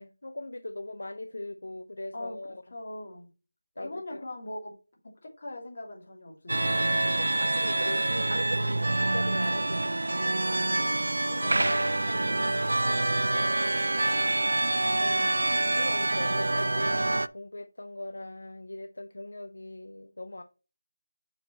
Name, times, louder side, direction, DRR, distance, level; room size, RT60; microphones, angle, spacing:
voice 1, 0.0-2.6 3.8-4.2 7.5-11.2 15.0-20.4, left 2 dB, 65° left, 0.6 m, -41 dB
voice 2, 2.7-3.3 3.8-4.8 5.2-7.0 11.2-14.0, left 1 dB, 45° left, 2.7 m, -42 dB
sound 1, 6.5-17.3, right 2 dB, 65° right, 0.4 m, -26 dB
6.6 x 4.9 x 4.2 m
figure-of-eight pair, 165°, 0 cm